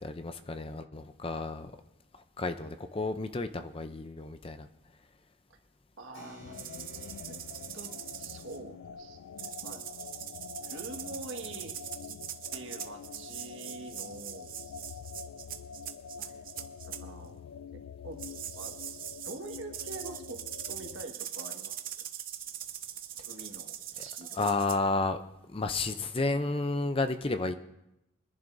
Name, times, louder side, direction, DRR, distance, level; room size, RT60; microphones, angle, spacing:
voice 1, 0.0-1.7 2.4-4.7 24.3-25.2 25.5-27.5, left 3 dB, 25° left, 9 dB, 0.5 m, -31 dB
voice 2, 6.0-6.6 6.9-7.4 7.7-9.2 9.6-9.8 10.6-11.7 12.5-14.5 16.2-17.4 17.7-18.2 18.5-18.8 19.2-20.4 20.7-22.0 23.2-24.6, right 2 dB, 70° right, 3 dB, 1.7 m, -45 dB
Keyboard (musical), 6.1-12.2, equal, 65° left, 3.6 m, -58 dB
sound 1, 6.4-21.0, left 7 dB, 80° left, 0.3 m, -46 dB
sound 2, 6.5-8.6 9.4-17.0 18.2-24.8, right 10 dB, 40° right, 0.7 m, -42 dB
23.5 x 11.0 x 2.7 m, 0.86 s
head